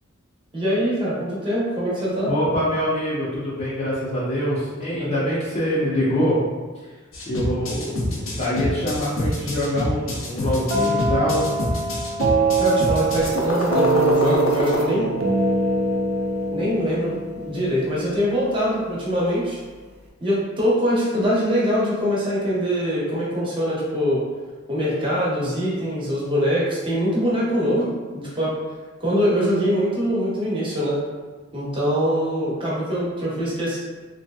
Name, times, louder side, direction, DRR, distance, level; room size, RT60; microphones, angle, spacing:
voice 1, 0.5-2.3 5.0-5.1 12.6-15.1 16.5-19.6 20.2-24.2 24.7-28.5 29.0-31.0 31.5-33.8, equal, 25° right, -7 dB, 0.9 m, -23 dB
voice 2, 2.3-6.4 7.3-11.4, equal, 35° left, -9 dB, 0.6 m, -24 dB
sound 1, 7.1-14.8, left 1 dB, 70° left, 0.6 m, -27 dB
sound 2, 10.7-18.4, right 2 dB, 80° right, 0.5 m, -23 dB
3.1 x 2.7 x 2.3 m, 1.4 s
head